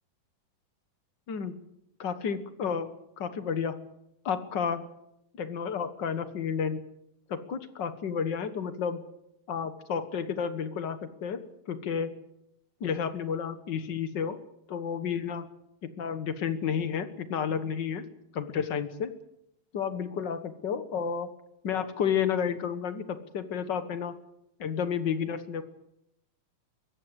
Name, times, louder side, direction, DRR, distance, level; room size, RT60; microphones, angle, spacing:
voice 1, 2.0-2.9 3.2-3.8 4.2-4.9 5.4-6.8 7.3-9.0 9.5-11.4 11.7-12.1 12.8-14.4 14.7-15.5 15.8-18.0 18.3-19.1 19.7-21.3 21.6-24.1 24.6-25.6, left 7 dB, 55° left, 10 dB, 1.2 m, -31 dB
23.0 x 16.5 x 8.0 m, 0.80 s
omnidirectional pair, 3.9 m